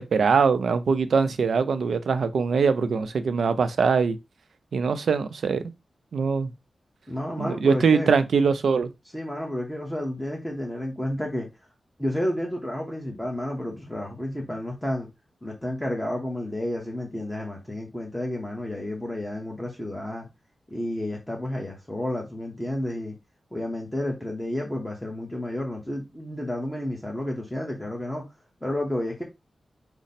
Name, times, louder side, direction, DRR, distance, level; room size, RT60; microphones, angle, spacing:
voice 1, 0.0-4.2 4.7-5.7 6.1-6.5 7.4-8.9, right 5 dB, 75° right, 0.5 m, -22 dB
voice 2, 7.1-8.1 9.1-11.5 12.0-15.1 15.4-20.3 20.7-23.1 23.5-28.2 28.6-29.2, left 1 dB, 5° left, 0.8 m, -31 dB
5.1 x 2.0 x 4.1 m
wide cardioid pair, 165°, 0 cm